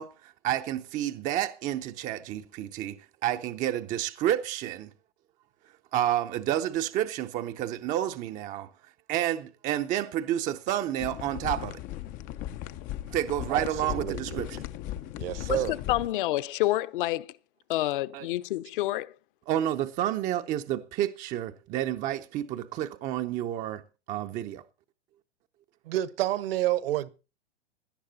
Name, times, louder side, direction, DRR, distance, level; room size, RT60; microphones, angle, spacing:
voice 1, 0.0-4.9 5.9-8.7 9.1-11.8 13.1-14.6 15.6-15.7 18.1-18.3 19.5-23.8 24.1-24.6, right 12 dB, 25° right, 0.7 m, -30 dB
sound 1, 11.0-16.1, left 13 dB, 25° left, 0.6 m, -37 dB
voice 2, 13.5-14.4 15.2-15.7 25.8-27.1, right 14 dB, 60° right, 1.3 m, -29 dB
voice 3, 15.5-17.3 17.7-19.1, left 16 dB, 50° left, 1.0 m, -28 dB
17.5 x 11.0 x 4.1 m
hypercardioid pair, 140°, 34 cm